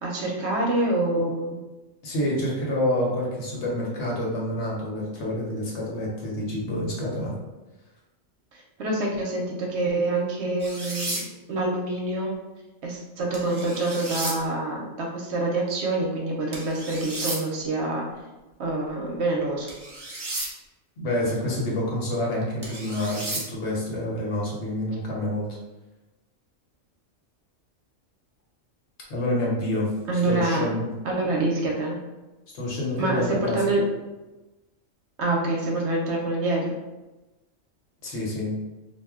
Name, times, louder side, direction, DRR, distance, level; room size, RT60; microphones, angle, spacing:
voice 1, 0.0-1.6 8.5-12.3 12.8-18.1 18.6-19.7 30.1-30.7 31.0-32.0 33.0-33.8 35.2-36.7, right 2 dB, 70° right, -1 dB, 0.8 m, -26 dB
voice 2, 2.0-7.3 21.0-25.6 29.1-29.9 30.2-30.9 32.5-33.7 38.0-38.5, left 1 dB, 65° left, -4 dB, 1.0 m, -28 dB
sound 1, 10.6-11.2 13.3-14.3 16.5-17.4 19.7-20.5 22.6-23.4, right 2 dB, 35° right, 0.4 m, -33 dB
2.4 x 2.1 x 3.5 m, 1.1 s
omnidirectional pair, 1.3 m